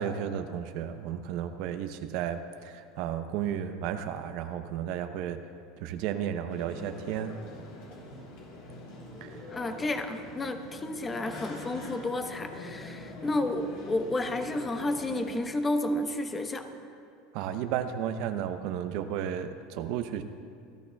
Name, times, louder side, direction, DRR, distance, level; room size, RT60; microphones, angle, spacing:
voice 1, 0.0-5.5 5.8-7.3 9.2-9.5 17.3-20.2, right 9 dB, 65° right, 9 dB, 0.7 m, -33 dB
sound 1, 6.5-15.4, left 1 dB, 75° left, 3.3 m, -44 dB
voice 2, 9.5-16.7, left 2 dB, 20° left, 6 dB, 1.0 m, -31 dB
26.5 x 12.5 x 2.3 m, 2.4 s
supercardioid pair, 115°, 0 cm